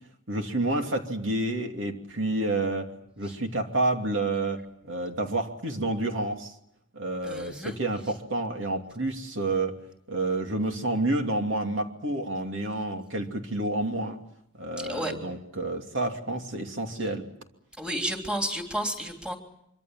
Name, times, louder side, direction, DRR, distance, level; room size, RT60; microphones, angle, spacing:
voice 1, 0.3-6.5 6.9-9.7 10.1-14.2 14.5-17.3, right 2 dB, 65° right, 4 dB, 2.8 m, -29 dB
voice 2, 7.2-7.8 14.9-15.1 17.8-19.4, right 1 dB, 5° right, 3 dB, 3.3 m, -31 dB
25.0 x 24.5 x 7.5 m, 0.76 s
head